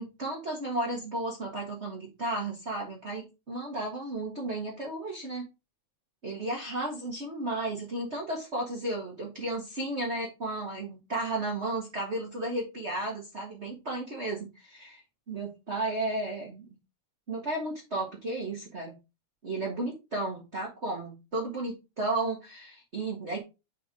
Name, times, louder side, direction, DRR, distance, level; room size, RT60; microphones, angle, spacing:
voice 1, 0.0-5.4 6.2-16.7 17.3-18.9 19.4-23.4, right 2 dB, 30° right, -1 dB, 1.5 m, -33 dB
7.1 x 4.7 x 4.8 m, 0.27 s
omnidirectional pair, 3.3 m